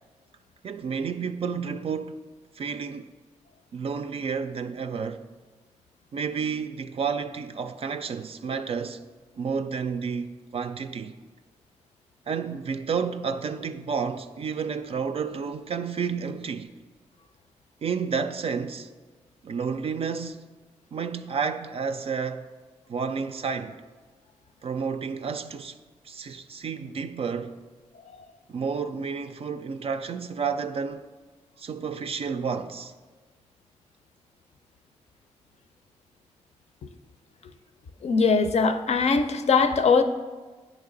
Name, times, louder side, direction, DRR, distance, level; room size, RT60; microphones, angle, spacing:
voice 1, 0.6-2.2 2.6-3.1 3.7-5.2 6.1-9.0 9.4-11.2 12.3-16.7 17.8-18.9 19.4-20.4 20.9-22.5 22.9-23.8 24.6-25.8 26.0-27.6 28.5-31.1 31.6-32.9, right 6 dB, 50° right, 0.3 m, -31 dB
voice 2, 38.0-40.0, left 5 dB, 55° left, 0.5 m, -21 dB
8.7 x 3.2 x 3.9 m
supercardioid pair, 50°, 13 cm